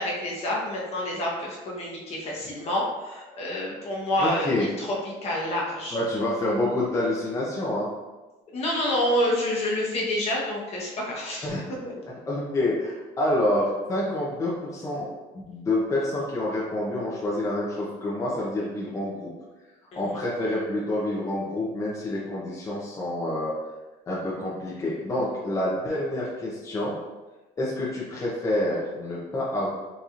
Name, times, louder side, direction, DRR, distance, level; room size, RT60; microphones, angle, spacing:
voice 1, 0.0-4.9 5.2-6.0 8.5-11.5 19.9-20.0, left 1 dB, 45° left, -3 dB, 1.0 m, -28 dB
voice 2, 4.2-4.7 5.9-7.9 11.4-11.6 12.3-15.1 15.5-19.3 20.0-23.5 24.1-27.0 27.6-29.7, left 1 dB, 20° left, -6 dB, 0.6 m, -27 dB
4.0 x 2.8 x 2.5 m, 1.2 s
cardioid pair, 130°, 15 cm